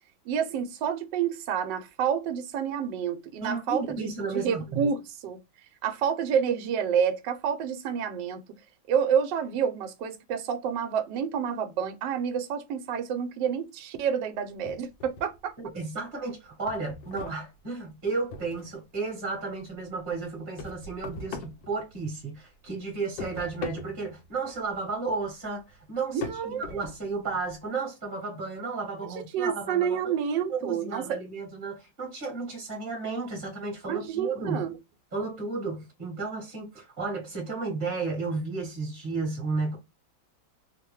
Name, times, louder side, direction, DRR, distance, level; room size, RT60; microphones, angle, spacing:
voice 1, 0.3-5.4 5.8-8.4 8.9-15.5 26.1-26.6 29.2-31.2 33.9-34.8, right 7 dB, 75° right, 1.2 m, -29 dB
voice 2, 3.4-4.8 15.6-30.1 30.5-34.6 35.1-39.8, right 4 dB, 30° right, 1.3 m, -33 dB
sound 1, 14.7-15.7 16.1-19.0 19.3-22.4 22.7-27.6, left 4 dB, 80° left, 1.3 m, -42 dB
3.3 x 2.1 x 3.0 m
omnidirectional pair, 2.1 m